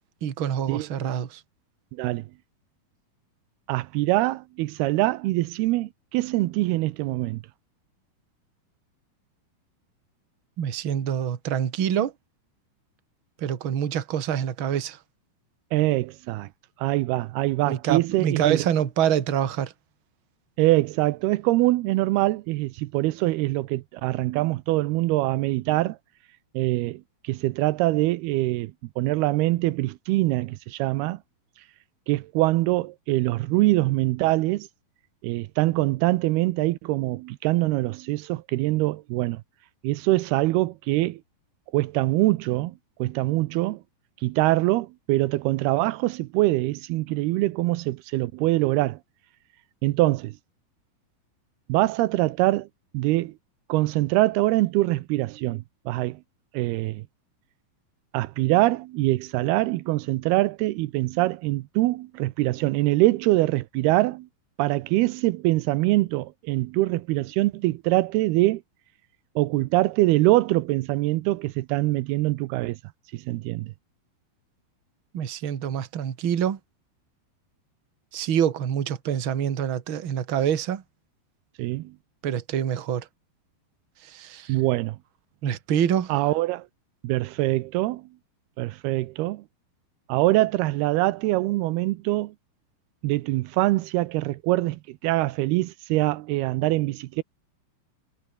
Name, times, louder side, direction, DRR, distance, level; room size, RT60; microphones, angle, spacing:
voice 1, 0.2-1.4 10.6-12.1 13.4-15.0 17.6-19.7 75.1-76.6 78.1-80.8 82.2-83.1 84.0-84.5 85.4-86.1, right 9 dB, 45° right, 1.7 m, -26 dB
voice 2, 1.9-2.3 3.7-7.4 15.7-16.5 16.8-18.7 20.6-26.0 26.5-28.7 29.0-31.2 32.1-34.7 35.2-39.4 39.8-41.2 41.7-43.8 44.2-49.0 49.8-50.3 51.7-52.7 52.9-53.3 53.7-56.2 56.5-57.0 58.1-64.3 64.6-68.6 69.4-72.8 73.1-73.7 81.6-81.9 84.5-85.0 86.1-86.7 87.0-88.0 88.6-89.4 90.1-92.3 93.0-97.2, right 18 dB, 85° right, 2.7 m, -24 dB
omnidirectional pair, 4.5 m